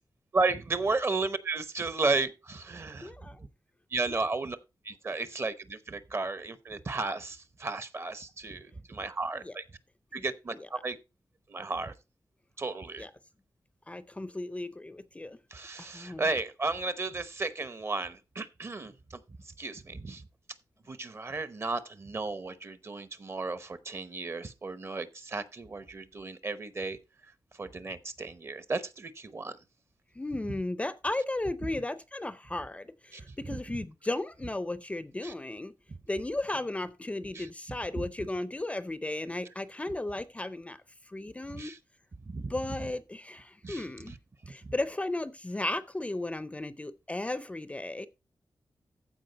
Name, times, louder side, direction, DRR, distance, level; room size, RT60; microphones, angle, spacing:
voice 1, 0.3-3.1 3.9-4.6 4.8-9.6 10.1-11.0 11.5-11.9 12.6-13.0 15.5-19.2 19.6-20.2 20.9-27.0 27.6-29.6 33.1-33.6 35.2-35.3 37.3-37.5 37.9-38.1 41.5-41.8 42.3-42.5 43.6-43.8 44.4-44.7, right 3 dB, 35° right, 0.8 m, -34 dB
voice 2, 3.0-3.4 4.1-4.2 9.4-9.5 10.2-10.3 10.5-10.7 13.0-13.1 13.9-15.4 15.8-16.3 30.2-35.7 36.1-40.8 41.1-41.7 42.5-44.1 44.5-48.1, left 2 dB, 15° left, 0.5 m, -35 dB
14.5 x 5.0 x 4.0 m
wide cardioid pair, 160°, 7 cm